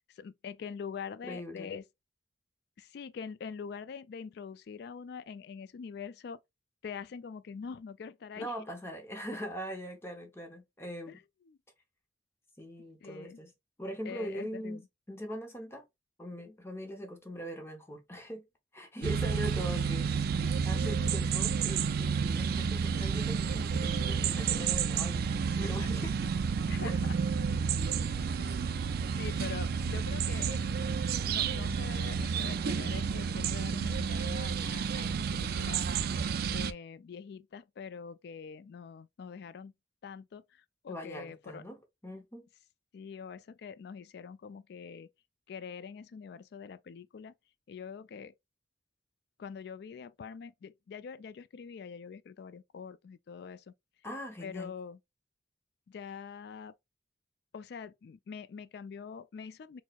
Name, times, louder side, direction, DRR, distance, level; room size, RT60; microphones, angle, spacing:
voice 1, 0.1-1.8 2.8-6.4 6.8-8.5 11.1-11.2 11.5-11.6 13.0-13.4 14.0-14.8 26.7-27.2 28.4-28.7 29.1-30.6 31.2-35.9 36.5-39.7 40.0-41.6 42.9-45.1 45.5-47.3 47.7-48.3 49.4-53.7 54.4-55.0 55.9-56.7 57.5-59.8, left 6 dB, 60° left, 0.3 m, -44 dB
voice 2, 1.2-1.7 8.4-11.2 12.6-13.5 13.8-15.8 16.2-18.4 18.7-20.1 20.6-26.1 40.9-42.4 54.0-54.7, equal, 15° left, 0.7 m, -41 dB
sound 1, 19.0-36.7, right 6 dB, 55° right, 0.3 m, -31 dB
4.4 x 2.1 x 2.3 m
head